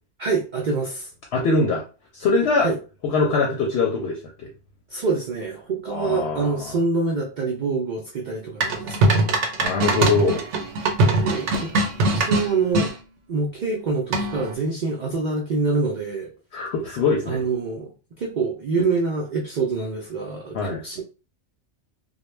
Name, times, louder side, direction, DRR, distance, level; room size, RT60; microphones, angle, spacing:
voice 1, 0.2-1.1 2.6-2.8 4.9-9.3 11.2-11.7 12.1-12.9 13.3-16.3 17.3-17.9 18.2-21.0, right 4 dB, 60° right, 0 dB, 0.5 m, -26 dB
voice 2, 1.3-1.8 2.1-2.7 3.0-4.5 5.9-6.7 9.6-10.4 11.1-11.3 16.5-17.4 20.5-20.8, left 3 dB, 70° left, 1 dB, 0.8 m, -23 dB
sound 1, 8.6-12.9 14.1-14.5, right 2 dB, 80° right, 0.9 m, -21 dB
2.2 x 2.1 x 3.1 m, 0.33 s
omnidirectional pair, 1.2 m